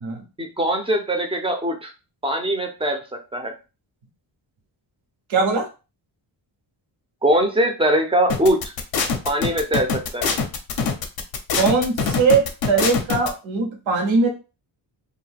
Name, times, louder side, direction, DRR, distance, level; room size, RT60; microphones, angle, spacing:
voice 1, 0.4-1.9 2.2-3.0 3.3-3.5 7.2-8.7 9.2-10.3, right 1 dB, 15° right, 3 dB, 0.4 m, -21 dB
voice 2, 5.3-5.7 11.5-14.3, right 4 dB, 75° right, 2 dB, 0.9 m, -20 dB
sound 1, 8.3-13.3, left 5 dB, 50° left, 0.6 m, -23 dB
2.6 x 2.3 x 3.3 m, 0.30 s
wide cardioid pair, 165°, 46 cm